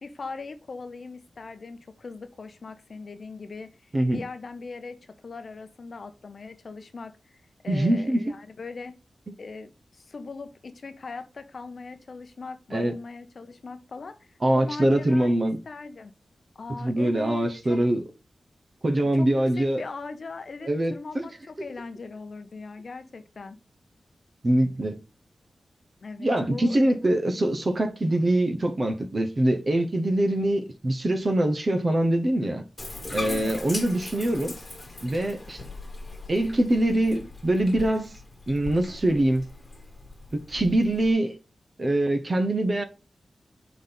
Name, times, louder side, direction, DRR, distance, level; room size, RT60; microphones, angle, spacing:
voice 1, 0.0-9.0 9.4-16.1 16.5-17.8 19.1-23.6 26.0-26.9 33.3-33.6, left 4 dB, 50° left, 0.7 m, -40 dB
voice 2, 7.7-8.4 9.3-9.4 12.7-12.9 14.4-15.6 16.8-18.0 18.8-19.8 20.7-21.3 24.4-25.0 26.2-32.6 33.1-34.5 35.0-35.6 36.3-38.1 38.5-39.5 40.3-41.4 41.8-42.8, right 1 dB, 30° right, 0.8 m, -24 dB
Bathtub (filling or washing), 32.8-41.1, left 2 dB, 25° left, 1.5 m, -40 dB
5.2 x 4.0 x 5.6 m
wide cardioid pair, 150°, 0 cm